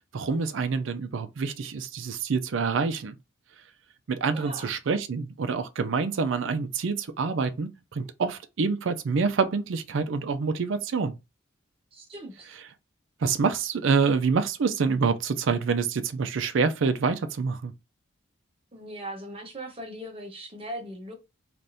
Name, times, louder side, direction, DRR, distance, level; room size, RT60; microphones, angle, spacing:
voice 1, 0.0-3.2 4.1-11.2 13.2-17.7, right 5 dB, 75° right, 0.4 m, -27 dB
voice 2, 4.3-4.7 11.9-12.5 18.7-21.1, right 1 dB, 30° right, 0.9 m, -39 dB
3.4 x 2.5 x 2.6 m
head